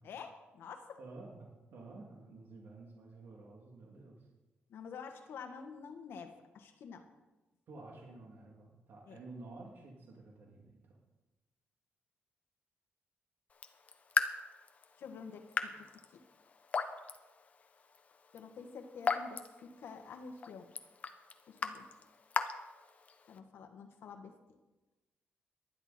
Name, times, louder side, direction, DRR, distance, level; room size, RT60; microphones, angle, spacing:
voice 1, 0.0-1.0 4.7-7.1 9.1-9.2 15.0-16.2 18.3-20.7 21.5-21.9 23.3-24.6, left 5 dB, 75° left, 5 dB, 1.6 m, -49 dB
voice 2, 1.0-4.2 7.7-11.0, right 3 dB, 65° right, -2 dB, 3.0 m, -51 dB
Raindrop / Drip, 13.5-23.4, left 5 dB, 40° left, 1.0 m, -39 dB
19.5 x 12.5 x 4.4 m, 1.1 s
wide cardioid pair, 155°, 4 cm